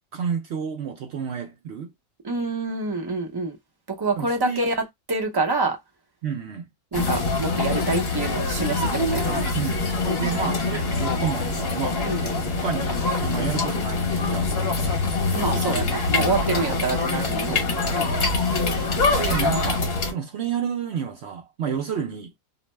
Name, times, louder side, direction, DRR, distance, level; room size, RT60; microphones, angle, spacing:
voice 1, 0.1-1.9 4.2-4.7 6.2-6.6 9.5-9.9 10.2-12.1 12.4-12.9 13.2-15.2 15.5-15.9 16.6-17.0 17.5-17.9 18.2-18.4 19.1-22.3, right 7 dB, 65° right, 0.7 m, -31 dB
voice 2, 2.2-3.6 3.9-5.8 6.9-9.5 10.0-10.3 12.1-12.3 15.3-17.6 18.0-18.2, right 3 dB, 35° right, 0.4 m, -27 dB
sound 1, 6.9-20.1, left 3 dB, 45° left, 1.1 m, -24 dB
2.6 x 2.0 x 3.1 m
omnidirectional pair, 1.6 m